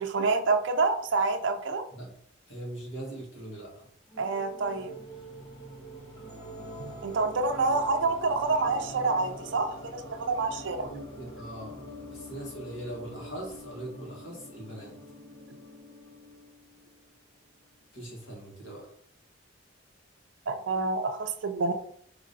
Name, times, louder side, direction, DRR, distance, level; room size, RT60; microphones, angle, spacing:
voice 1, 0.0-1.8 4.2-5.0 6.8-10.9 20.5-21.7, right 3 dB, 70° right, 5 dB, 0.4 m, -27 dB
voice 2, 2.5-3.7 10.8-11.8 12.1-14.9 17.9-18.9, right 1 dB, 70° left, -1 dB, 1.4 m, -41 dB
sound 1, 4.1-17.0, equal, 25° left, 1.0 m, -45 dB
5.0 x 2.9 x 2.7 m, 0.62 s
head